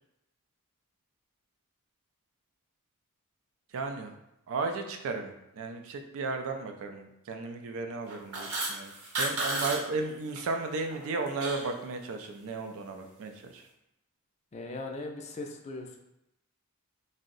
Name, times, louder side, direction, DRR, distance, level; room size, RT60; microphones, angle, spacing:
voice 1, 3.7-4.1 4.5-13.7, right 3 dB, 65° right, 5 dB, 0.4 m, -35 dB
sound 1, 8.1-9.8 10.1-10.4 10.8-11.7, right 2 dB, 85° right, 0.9 m, -33 dB
voice 2, 14.5-16.0, left 2 dB, 30° left, 2 dB, 0.3 m, -39 dB
2.6 x 2.0 x 3.8 m, 0.86 s
head